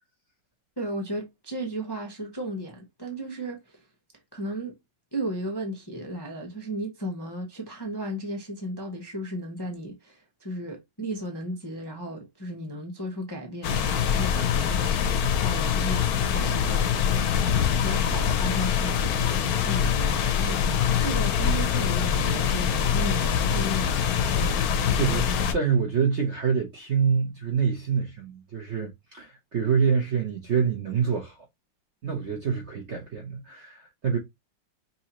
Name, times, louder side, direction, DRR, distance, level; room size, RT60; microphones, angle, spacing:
voice 1, 0.8-3.6 4.3-4.7 5.1-17.4 17.8-20.6 21.0-24.9, right 1 dB, 25° left, 0.5 m, -35 dB
sound 1, 13.6-25.5, left 8 dB, 65° left, 1.0 m, -24 dB
voice 2, 24.8-31.5 32.0-34.2, right 6 dB, 55° right, 0.8 m, -26 dB
5.6 x 2.7 x 2.9 m
omnidirectional pair, 2.1 m